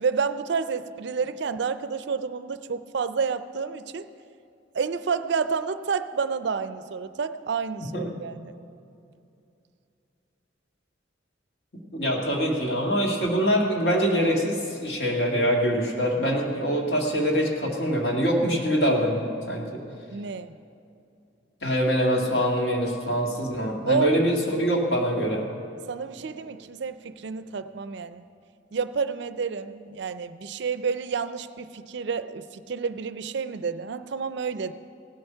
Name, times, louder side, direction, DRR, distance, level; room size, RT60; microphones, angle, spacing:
voice 1, 0.0-4.1 4.7-8.5 20.1-20.5 23.9-24.1 25.9-28.2 28.7-34.7, right 5 dB, 60° right, 12 dB, 0.4 m, -29 dB
voice 2, 11.9-19.8 21.6-25.5, equal, 55° left, 0 dB, 1.8 m, -24 dB
17.5 x 7.9 x 5.6 m, 2.6 s
head